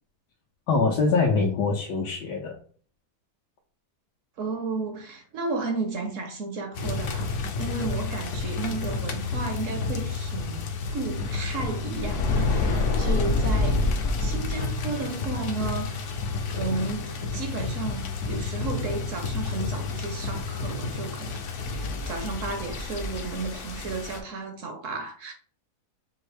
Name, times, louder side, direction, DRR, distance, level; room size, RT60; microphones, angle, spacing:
voice 1, 0.7-2.6, left 4 dB, 80° left, 1.3 m, -23 dB
voice 2, 4.4-7.3 7.6-10.6 10.9-25.3, right 3 dB, 60° right, 0.9 m, -33 dB
sound 1, 6.7-24.2, left 3 dB, 60° left, 0.9 m, -29 dB
5.2 x 2.7 x 3.2 m
omnidirectional pair, 1.7 m